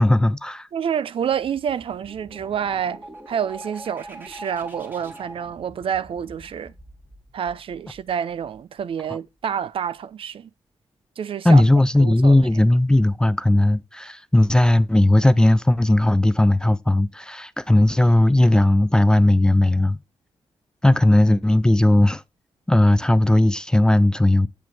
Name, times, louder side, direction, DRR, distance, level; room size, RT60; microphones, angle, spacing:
voice 1, 0.0-0.7 11.4-20.0 20.8-22.2 22.7-24.5, left 1 dB, 5° left, 0.4 m, -17 dB
voice 2, 0.7-6.7 7.3-10.5 11.2-11.6 12.0-12.4, right 8 dB, 60° right, 0.5 m, -28 dB
sound 1, 1.2-8.8, right 1 dB, 20° right, 2.2 m, -43 dB
7.8 x 7.6 x 3.4 m
wide cardioid pair, 140°, 10 cm